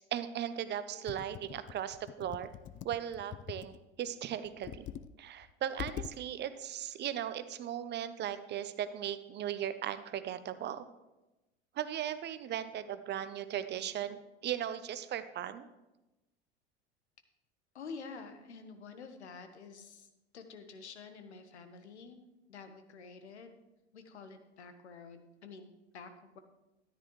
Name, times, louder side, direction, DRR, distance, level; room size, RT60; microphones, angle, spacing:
voice 1, 0.0-2.5 2.8-4.9 5.2-10.8 11.8-15.7, right 10 dB, 30° right, 12 dB, 0.7 m, -37 dB
Computer keyboard, 1.1-3.8 4.5-5.1 5.4-5.5 5.8-6.2, left 10 dB, 25° left, 0.3 m, -44 dB
voice 2, 17.7-22.2 22.5-23.5 23.9-26.4, left 5 dB, 80° left, 8 dB, 1.2 m, -49 dB
13.0 x 10.0 x 3.1 m, 1.0 s
hypercardioid pair, 80°, 33 cm